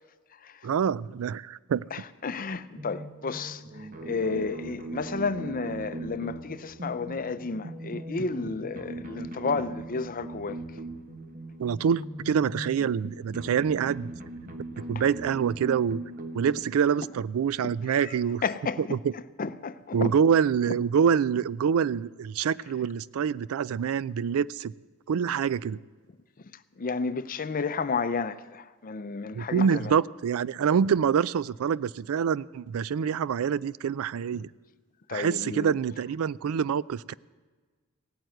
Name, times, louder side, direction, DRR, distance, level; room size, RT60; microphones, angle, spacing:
voice 1, 0.6-2.0 11.6-14.1 14.8-16.0 16.3-18.4 18.8-19.1 19.9-24.7 25.1-25.8 29.3-34.5 35.1-37.1, right 7 dB, 70° right, 0.4 m, -26 dB
voice 2, 1.9-10.6 17.9-18.1 18.4-19.0 19.4-20.1 26.8-29.9 35.1-35.7, left 4 dB, 40° left, 0.6 m, -32 dB
sound 1, 2.7-16.7, right 1 dB, 40° right, 1.2 m, -39 dB
17.0 x 9.3 x 7.7 m
head